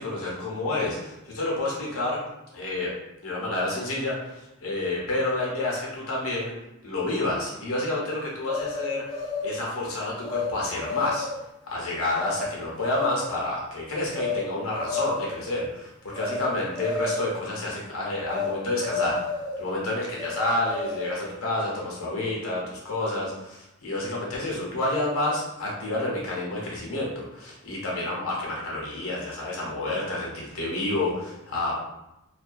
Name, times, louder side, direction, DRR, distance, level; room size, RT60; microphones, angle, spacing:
voice 1, 0.0-2.2 2.5-2.9 3.2-6.5 6.8-11.3 11.7-19.2 19.6-31.7, left 2 dB, 70° left, -4 dB, 0.8 m, -29 dB
sound 1, 8.5-9.6 10.2-10.5 10.8-11.4 12.2-12.4 12.8-13.3 14.1-14.4 14.7-15.4 16.1-16.4 16.7-17.3 18.3-18.5 18.8-19.6 20.2-21.2, left 4 dB, 20° left, 0.4 m, -31 dB
2.2 x 2.2 x 2.5 m, 0.92 s
head